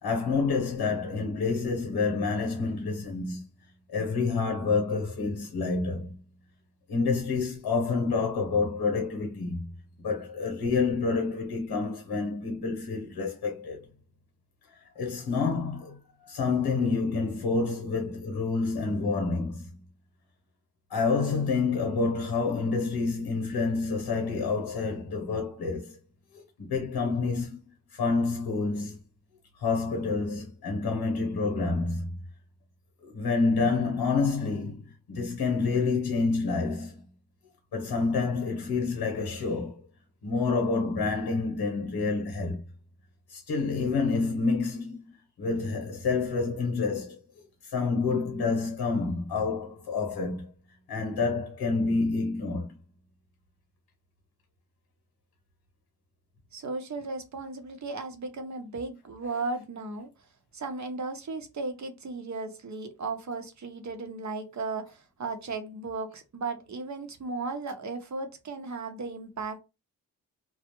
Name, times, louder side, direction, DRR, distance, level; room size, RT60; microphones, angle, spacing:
voice 1, 0.0-3.4 3.9-6.2 6.9-9.7 10.0-13.9 15.0-16.0 16.2-19.8 20.9-26.0 26.3-27.6 27.9-29.0 29.6-32.1 33.0-37.0 37.7-39.8 40.2-42.6 43.3-45.1 45.4-47.2 47.6-50.5 50.9-52.7, left 4 dB, 80° left, 0.8 m, -28 dB
voice 2, 56.5-60.1 60.5-69.6, right 3 dB, 50° right, 0.8 m, -35 dB
2.3 x 2.0 x 2.9 m
supercardioid pair, 40°, 38 cm